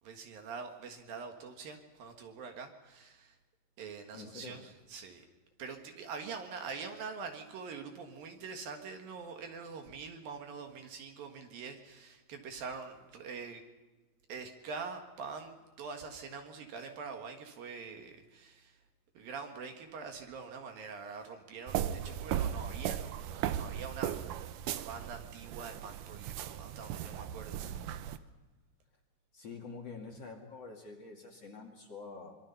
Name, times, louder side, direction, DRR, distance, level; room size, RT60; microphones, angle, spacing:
voice 1, 0.0-3.4 3.8-5.3 5.6-13.6 14.3-18.8 19.1-24.2 24.7-28.1, right 5 dB, 65° right, 4 dB, 3.2 m, -44 dB
voice 2, 4.1-4.6 27.6-27.7 29.3-32.3, left 4 dB, 45° left, 1 dB, 2.9 m, -47 dB
sound 1, 21.7-28.2, right 10 dB, 90° right, 1.8 m, -37 dB
25.5 x 23.0 x 5.7 m, 1.2 s
omnidirectional pair, 4.8 m